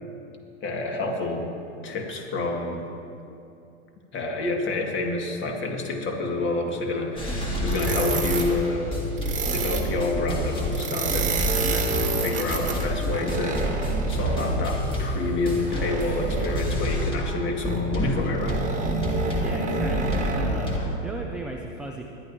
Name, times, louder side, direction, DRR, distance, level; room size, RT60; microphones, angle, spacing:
voice 1, 0.6-1.5 1.8-2.8 4.1-9.0 9.4-18.6, left 2 dB, 30° left, 1 dB, 2.0 m, -28 dB
sound 1, 7.2-17.4 17.6-21.0, equal, 15° left, 2.1 m, -28 dB
sound 2, 7.7-8.5 9.2-9.9 10.7-14.6 15.7-16.7 17.6-17.9 18.3-20.8, right 3 dB, 20° right, 1.6 m, -29 dB
voice 2, 19.4-22.0, right 2 dB, 5° right, 0 dB, 0.3 m, -37 dB
21.0 x 11.0 x 2.8 m, 2.6 s
hypercardioid pair, 110°, 38 cm